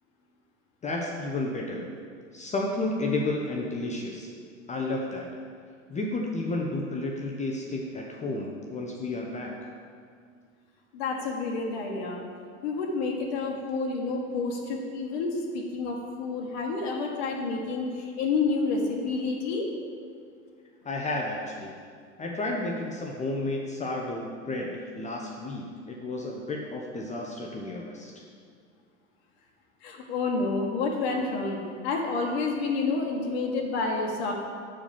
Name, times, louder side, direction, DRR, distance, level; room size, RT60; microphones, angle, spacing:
voice 1, 0.8-1.8 2.3-4.3 4.7-5.3 5.9-9.5 20.8-21.8 22.2-28.2, left 2 dB, 20° left, -1 dB, 0.8 m, -32 dB
voice 2, 10.9-12.2 12.6-19.7 29.8-34.3, left 3 dB, 55° left, 0 dB, 1.3 m, -29 dB
7.3 x 4.8 x 6.8 m, 2.1 s
figure-of-eight pair, 80°, 39 cm